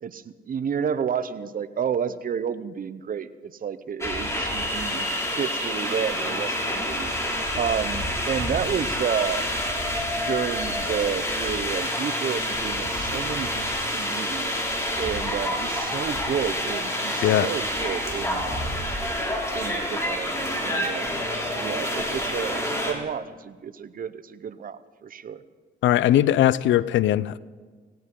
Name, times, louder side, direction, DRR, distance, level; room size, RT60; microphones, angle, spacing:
voice 1, 0.0-9.5 10.2-14.6 15.0-18.7 19.5-21.3 21.6-25.4, right 7 dB, 45° right, 13 dB, 0.8 m, -31 dB
sound 1, 4.0-22.9, equal, 15° left, 3.3 m, -28 dB
voice 2, 25.8-27.4, left 12 dB, 75° left, 19 dB, 0.5 m, -20 dB
17.5 x 17.5 x 3.8 m, 1.5 s
cardioid pair, 90°, 20 cm